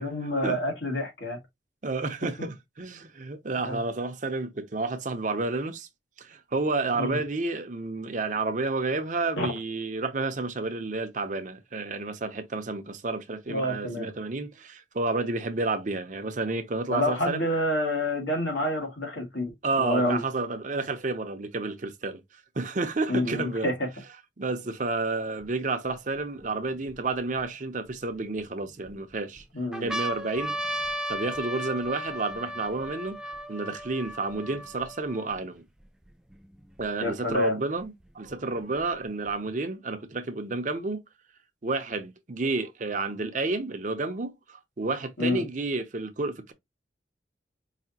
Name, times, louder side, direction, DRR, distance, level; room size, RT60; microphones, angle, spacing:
voice 1, 0.0-1.4 3.6-3.8 7.0-7.2 9.4-9.5 13.5-14.1 16.9-19.5 19.8-20.2 23.1-23.7 29.5-29.9 37.0-37.6 45.2-45.4, left 1 dB, 85° left, 1.9 m, -28 dB
voice 2, 1.8-5.9 6.2-17.4 19.6-22.2 22.6-23.7 24.4-29.4 29.8-30.8 31.1-33.2 33.5-35.6 36.8-41.0 41.6-46.5, right 3 dB, 45° right, 0.6 m, -30 dB
sound 1, 25.4-25.5 26.2-27.4 28.1-28.9 29.4-29.5 29.7-35.4 36.1-36.2 36.3-37.3 38.3-39.3, equal, 5° right, 0.3 m, -36 dB
4.9 x 2.7 x 2.8 m
head